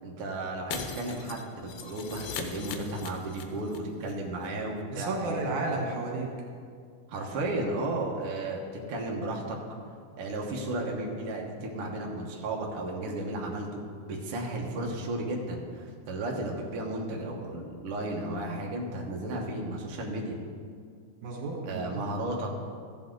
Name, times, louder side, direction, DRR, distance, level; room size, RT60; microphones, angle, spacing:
voice 1, 0.0-5.4 7.1-8.6 8.9-9.6 10.2-13.8 14.1-20.4 21.7-22.5, right 2 dB, 90° right, -1 dB, 1.2 m, -34 dB
Shatter, 0.7-3.8 4.0-4.1 4.4-4.5, left 7 dB, 85° left, 2.8 m, -39 dB
voice 2, 4.9-6.3 21.2-22.0, right 2 dB, 60° right, 0 dB, 2.5 m, -32 dB
15.0 x 8.5 x 3.9 m, 2.1 s
omnidirectional pair, 4.7 m